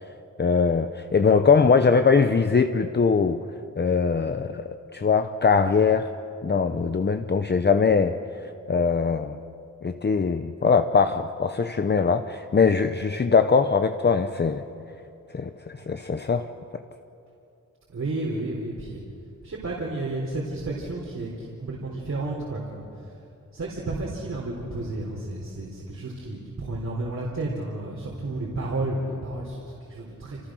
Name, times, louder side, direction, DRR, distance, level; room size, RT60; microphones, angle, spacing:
voice 1, 0.4-3.4 3.8-6.1 6.4-8.2 8.7-9.4 9.8-14.6 15.3-16.5, left 5 dB, 30° left, 8 dB, 0.8 m, -21 dB
voice 2, 6.7-7.0 15.8-15.9 17.9-19.0 19.4-22.9 23.5-30.5, right 2 dB, 55° right, -3 dB, 4.0 m, -32 dB
29.0 x 28.5 x 6.3 m, 2.7 s
wide cardioid pair, 170°, 33 cm